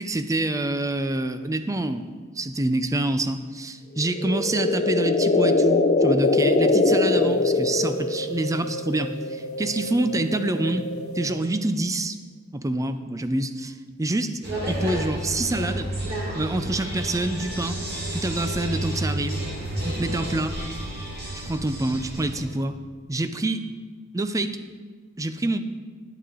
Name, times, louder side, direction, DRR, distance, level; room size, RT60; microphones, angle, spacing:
voice 1, 0.0-2.1 2.4-10.9 11.1-12.2 12.5-14.4 14.7-15.9 16.4-17.8 18.1-19.4 19.8-20.6 21.3-22.8 23.1-23.6 24.1-24.6 25.2-25.6, right 2 dB, 15° right, 10 dB, 0.5 m, -26 dB
sound 1, 4.0-8.4, left 3 dB, 35° left, 0.7 m, -21 dB
sound 2, 6.2-11.6, equal, 80° left, 1.2 m, -34 dB
sound 3, 14.4-22.4, right 1 dB, 50° right, 2.7 m, -31 dB
11.0 x 10.5 x 3.7 m, 1.5 s
head